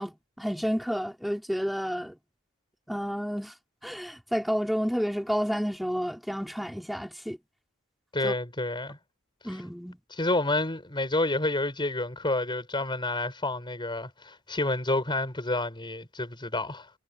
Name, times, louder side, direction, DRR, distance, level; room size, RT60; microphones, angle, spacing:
voice 1, 0.0-2.1 2.9-3.5 3.8-7.4 8.2-8.3 9.4-10.0, equal, ahead, 5.6 m, -30 dB
voice 2, 8.1-9.0 10.1-16.9, left 2 dB, 25° left, 4.9 m, -29 dB
head